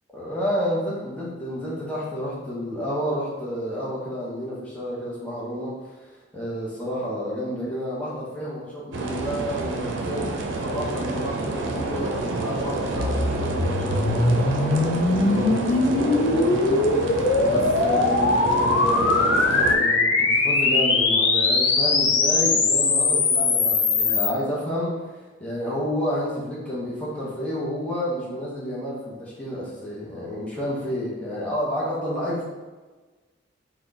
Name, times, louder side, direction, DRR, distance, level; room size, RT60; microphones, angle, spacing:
voice 1, 0.1-10.3 10.6-25.0 25.4-32.4, equal, 5° left, -7 dB, 0.8 m, -30 dB
sound 1, 8.9-19.8, right 2 dB, 80° right, 0.5 m, -29 dB
sound 2, 12.9-24.3, left 3 dB, 80° left, 0.5 m, -21 dB
4.2 x 2.2 x 3.6 m, 1.3 s
head